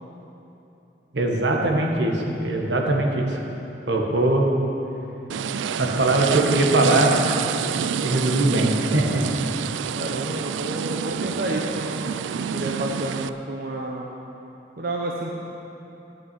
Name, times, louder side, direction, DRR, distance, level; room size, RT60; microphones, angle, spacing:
voice 1, 1.1-3.4 3.9-4.5 5.8-7.1 8.0-9.2, right 2 dB, 75° right, 0 dB, 1.4 m, -21 dB
sound 1, 5.3-13.3, right 8 dB, 90° right, 0.3 m, -28 dB
voice 2, 9.9-14.1 14.8-15.3, right 1 dB, 55° right, -2 dB, 0.8 m, -30 dB
11.0 x 6.0 x 8.8 m, 3.0 s
head